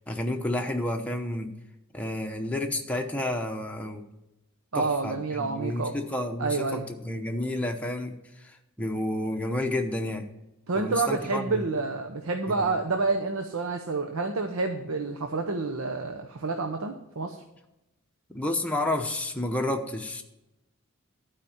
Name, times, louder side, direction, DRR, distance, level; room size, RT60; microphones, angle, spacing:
voice 1, 0.1-1.5 1.9-4.0 4.7-10.3 10.7-11.6 12.6-12.7 18.3-20.2, left 1 dB, 5° left, 2 dB, 0.9 m, -30 dB
voice 2, 4.7-5.9 6.4-6.9 10.7-17.4, right 3 dB, 85° right, 5 dB, 0.8 m, -29 dB
12.0 x 5.0 x 7.2 m, 0.93 s
head